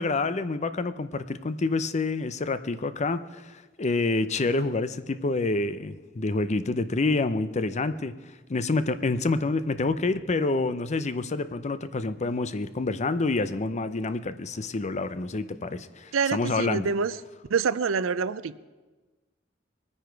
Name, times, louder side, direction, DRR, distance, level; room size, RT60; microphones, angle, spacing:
voice 1, 0.0-8.1 8.5-16.9, left 3 dB, 35° left, 12 dB, 0.6 m, -27 dB
voice 2, 16.1-17.1 17.5-18.6, right 5 dB, 90° right, 17 dB, 0.5 m, -26 dB
22.0 x 9.8 x 4.6 m, 1.2 s
head